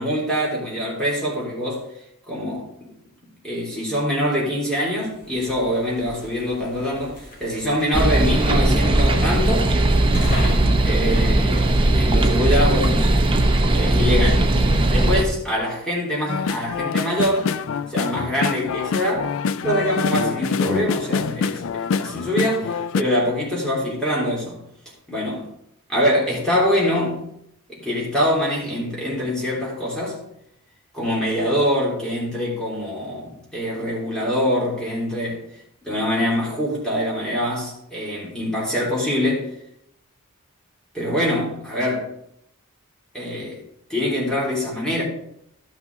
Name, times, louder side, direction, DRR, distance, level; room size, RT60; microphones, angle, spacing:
voice 1, 0.0-1.8 2.3-2.9 3.4-9.7 10.8-13.1 13.7-14.5 14.9-17.5 17.9-19.3 19.6-24.6 25.1-25.4 25.9-27.3 27.7-30.2 30.9-35.4 35.8-39.5 40.9-42.1 43.1-43.6 43.9-45.0, equal, 5° left, 3.1 m, -24 dB
sound 1, 5.0-12.8, equal, 40° left, 2.2 m, -36 dB
sound 2, 7.9-15.2, right 1 dB, 20° right, 0.8 m, -18 dB
sound 3, 16.3-23.0, left 5 dB, 60° left, 0.3 m, -25 dB
12.5 x 6.0 x 3.9 m
head